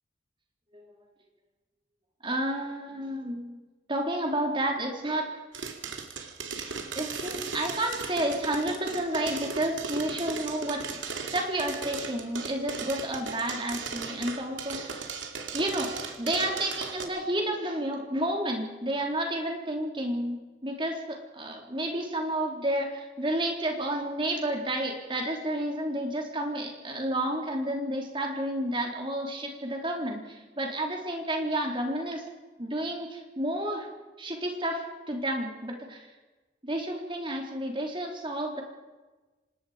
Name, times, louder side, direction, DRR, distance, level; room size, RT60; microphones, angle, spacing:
voice 1, 2.2-3.6 3.9-5.4 7.0-10.9 11.3-15.1 15.5-32.2 32.6-33.9 34.2-36.1 36.6-38.6, right 1 dB, 25° right, 1 dB, 3.8 m, -31 dB
sound 1, 5.5-17.0, right 5 dB, 85° right, 2.6 m, -37 dB
26.0 x 20.0 x 5.2 m, 1.2 s
head